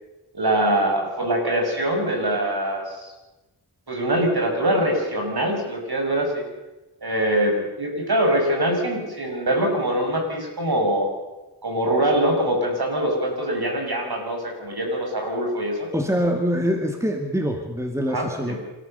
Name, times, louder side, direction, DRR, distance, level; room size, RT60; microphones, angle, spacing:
voice 1, 0.3-3.1 3.9-6.4 7.0-11.1 11.6-15.9 18.1-18.6, right 1 dB, 50° right, 1 dB, 6.8 m, -23 dB
voice 2, 15.9-18.5, equal, 5° right, 4 dB, 2.2 m, -24 dB
27.5 x 14.0 x 6.8 m, 1.1 s
cardioid pair, 55°, 48 cm